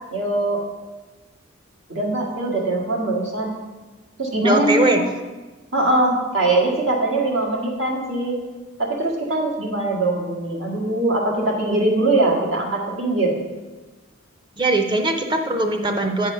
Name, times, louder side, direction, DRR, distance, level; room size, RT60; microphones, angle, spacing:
voice 1, 0.1-0.7 1.9-3.5 4.2-5.0 5.7-8.3 8.8-13.4, right 2 dB, 65° right, -2 dB, 1.8 m, -22 dB
voice 2, 4.4-5.0 14.6-16.3, right 2 dB, 25° right, 5 dB, 0.7 m, -20 dB
8.9 x 4.8 x 5.6 m, 1.2 s
head